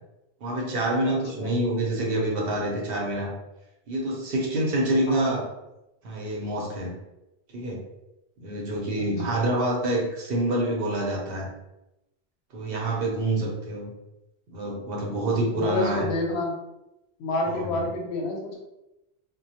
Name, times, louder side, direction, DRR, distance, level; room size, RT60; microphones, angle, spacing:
voice 1, 0.4-3.3 3.9-5.4 6.0-7.0 7.5-7.8 8.4-11.5 12.5-13.9 14.5-16.1 17.5-17.9, right 1 dB, 65° right, -2 dB, 0.8 m, -27 dB
voice 2, 1.1-1.5 5.1-5.3 8.9-9.4 15.5-16.6 17.2-18.6, left 2 dB, 90° left, 0 dB, 0.9 m, -29 dB
2.1 x 2.1 x 2.7 m, 0.93 s
omnidirectional pair, 1.0 m